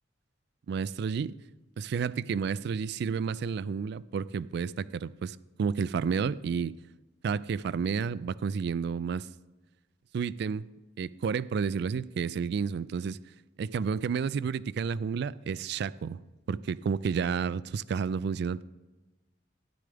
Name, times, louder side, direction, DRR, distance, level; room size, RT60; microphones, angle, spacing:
voice 1, 0.7-1.4 1.8-6.8 7.2-9.3 10.1-10.7 11.0-13.2 13.6-16.2 16.5-18.6, right 6 dB, 60° right, 0.3 m, -31 dB
13.5 x 10.5 x 3.4 m
head